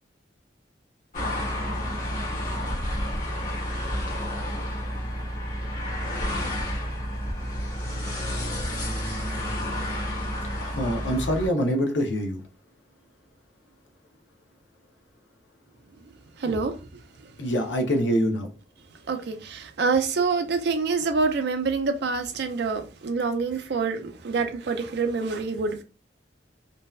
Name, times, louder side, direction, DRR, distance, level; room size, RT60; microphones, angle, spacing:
sound 1, 1.1-11.5, equal, 45° left, 0.9 m, -30 dB
voice 1, 10.6-12.4 17.4-18.5, equal, 85° left, 0.6 m, -25 dB
voice 2, 16.4-16.7 19.1-25.8, right 4 dB, 65° right, 0.4 m, -26 dB
2.6 x 2.1 x 2.3 m
head